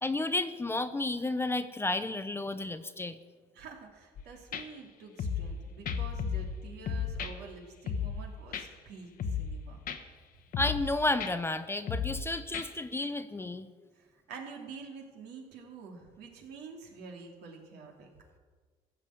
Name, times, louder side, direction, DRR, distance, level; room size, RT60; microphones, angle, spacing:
voice 1, 0.0-3.2 10.6-13.7, left 2 dB, 15° left, 11 dB, 0.6 m, -32 dB
voice 2, 3.5-9.8 14.0-18.1, right 5 dB, 80° right, 1 dB, 2.7 m, -48 dB
sound 1, 4.2-4.3 4.5-4.6 5.2-5.6 5.9-6.6 6.9-7.3 7.9-8.2 8.5-8.6 9.2-9.6 9.9-10.0 10.5-10.9 11.2-11.3 11.9-12.2 12.5-12.7, left 7 dB, 60° left, 1.1 m, -33 dB
15.5 x 6.8 x 8.1 m, 1.5 s
cardioid pair, 110°, 17 cm